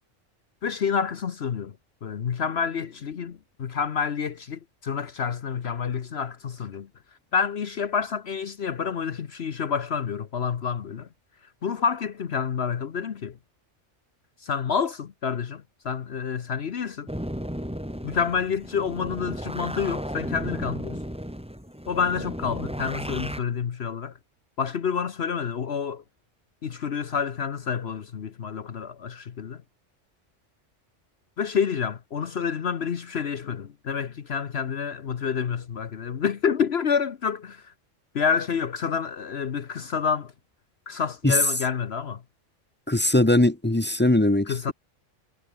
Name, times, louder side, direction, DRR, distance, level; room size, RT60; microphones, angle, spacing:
voice 1, 0.6-6.9 7.3-11.1 11.6-13.4 14.4-17.1 18.0-21.0 21.9-24.1 24.6-26.0 26.6-29.6 31.4-37.7 38.1-40.3 40.9-42.2 44.5-44.7, left 6 dB, 60° left, 1.2 m, -28 dB
sound 1, 17.1-23.4, equal, 5° right, 6.7 m, -34 dB
voice 2, 42.9-44.7, left 1 dB, 10° left, 0.6 m, -20 dB
omnidirectional pair, 1.2 m